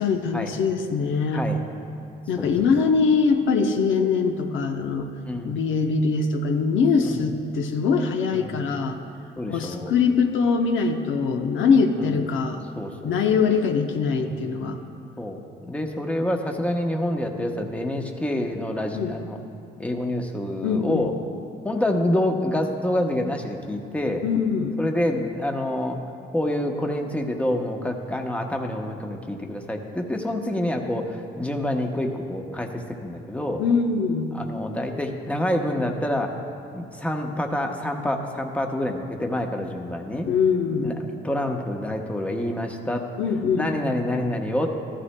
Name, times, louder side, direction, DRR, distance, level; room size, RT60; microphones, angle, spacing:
voice 1, 0.0-1.4 2.3-5.1 5.4-9.0 9.5-12.6 13.0-14.8 17.3-17.6 18.9-19.2 20.6-21.1 24.2-24.8 33.6-34.3 40.3-41.0 43.2-43.7, left 5 dB, 80° left, 4 dB, 0.8 m, -22 dB
voice 2, 5.2-5.6 7.0-7.2 8.3-8.6 9.4-9.9 12.0-12.2 12.8-13.1 14.2-14.5 15.2-15.4 15.7-19.4 19.8-21.1 21.6-24.2 24.8-26.0 26.3-33.6 34.3-36.4 36.7-40.3 40.8-43.1 43.6-44.7, left 1 dB, 5° left, 2 dB, 0.9 m, -27 dB
13.5 x 12.5 x 2.2 m, 2.7 s
cardioid pair, 90°, 20 cm